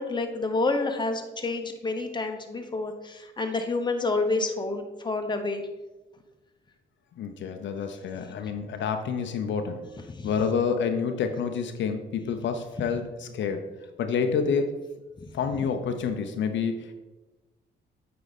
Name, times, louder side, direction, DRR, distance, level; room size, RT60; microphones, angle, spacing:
voice 1, 0.0-5.7 8.4-8.5 10.1-10.3 15.2-15.3, left 3 dB, 20° left, 4 dB, 0.9 m, -29 dB
voice 2, 7.2-9.8 10.2-13.6 14.0-14.7 15.3-16.9, left 6 dB, 70° left, 6 dB, 0.7 m, -28 dB
8.3 x 4.8 x 4.1 m, 1.1 s
cardioid pair, 90°, 20 cm